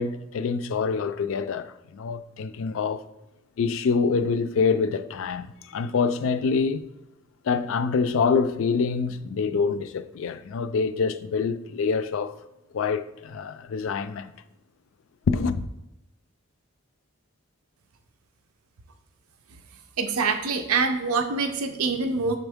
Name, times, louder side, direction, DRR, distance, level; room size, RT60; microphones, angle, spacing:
voice 1, 0.0-3.0 3.6-6.9 7.4-12.3 12.7-14.3 15.3-15.7, left 5 dB, 65° left, 0.3 m, -26 dB
voice 2, 20.0-22.4, right 4 dB, 85° right, 0.6 m, -25 dB
7.6 x 3.6 x 3.5 m
head